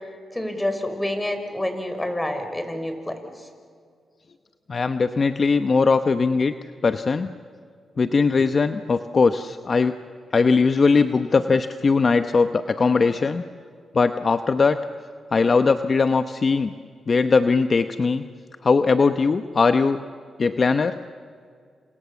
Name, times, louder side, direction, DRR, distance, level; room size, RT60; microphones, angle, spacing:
voice 1, 0.3-3.5, left 1 dB, 15° left, 7 dB, 5.6 m, -28 dB
voice 2, 4.7-6.5 6.8-7.3 8.0-9.9 10.3-13.4 13.9-14.8 15.3-16.7 17.1-18.2 18.6-20.0 20.4-21.0, left 4 dB, 50° left, 9 dB, 0.9 m, -20 dB
29.0 x 28.0 x 7.2 m, 2.2 s
cardioid pair, 55°, 0 cm